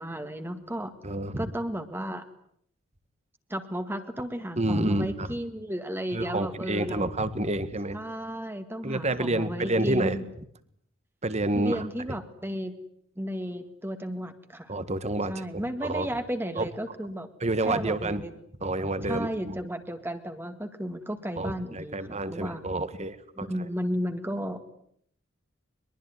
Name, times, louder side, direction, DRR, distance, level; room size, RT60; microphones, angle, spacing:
voice 1, 0.0-0.9 1.4-2.2 3.5-7.1 7.9-10.2 11.6-12.8 13.2-14.7 15.3-17.3 17.7-18.3 19.1-22.0 22.3-22.6 23.4-24.6, equal, 10° right, 7 dB, 2.0 m, -33 dB
voice 2, 1.0-1.5 4.6-5.3 6.1-8.0 8.8-10.2 11.2-11.9 14.7-16.1 16.6-16.7 17.4-18.3 18.6-19.6 21.4-23.7, right 1 dB, 35° right, 13 dB, 1.7 m, -29 dB
23.0 x 22.5 x 9.6 m, 0.68 s
head